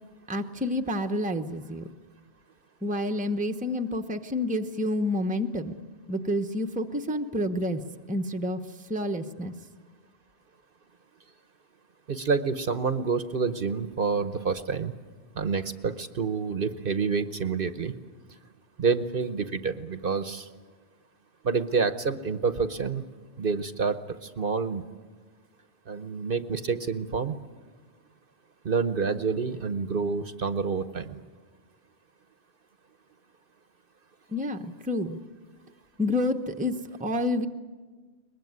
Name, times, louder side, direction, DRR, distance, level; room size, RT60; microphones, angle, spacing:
voice 1, 0.3-1.8 2.8-5.8 6.1-7.8 8.1-8.6 8.9-9.5 34.3-35.2 36.0-37.5, left 1 dB, 10° right, 6 dB, 0.9 m, -29 dB
voice 2, 12.1-14.9 15.4-18.0 18.8-20.5 21.4-23.0 23.4-24.8 25.9-27.4 28.6-31.2, right 5 dB, 55° right, 10 dB, 1.1 m, -28 dB
22.5 x 21.0 x 9.5 m, 1.4 s
omnidirectional pair, 1.2 m